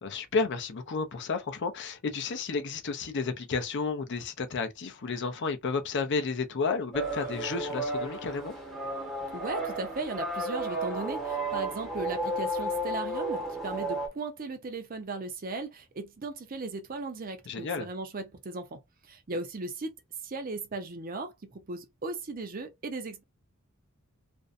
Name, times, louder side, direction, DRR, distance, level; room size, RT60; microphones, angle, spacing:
voice 1, 0.0-8.5 17.5-17.9, left 4 dB, 55° left, 0.5 m, -32 dB
sound 1, 6.9-14.1, right 1 dB, ahead, 0.7 m, -33 dB
voice 2, 9.3-18.8 19.1-19.9 20.2-21.3 21.7-23.2, right 3 dB, 40° right, 0.5 m, -37 dB
2.6 x 2.1 x 2.5 m
head